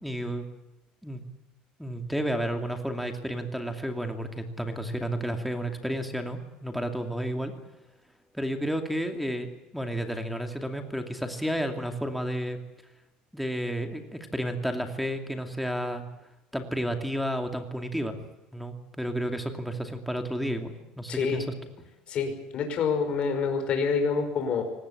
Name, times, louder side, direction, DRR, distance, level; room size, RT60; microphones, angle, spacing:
voice 1, 0.0-0.5 1.0-1.2 1.8-7.5 8.3-12.6 13.3-16.1 16.5-18.2 18.5-21.4, equal, ahead, 4 dB, 2.5 m, -31 dB
voice 2, 21.1-21.5 22.1-24.6, left 5 dB, 40° left, 5 dB, 5.5 m, -27 dB
24.0 x 19.5 x 8.5 m, 0.98 s
cardioid pair, 165°, 3 cm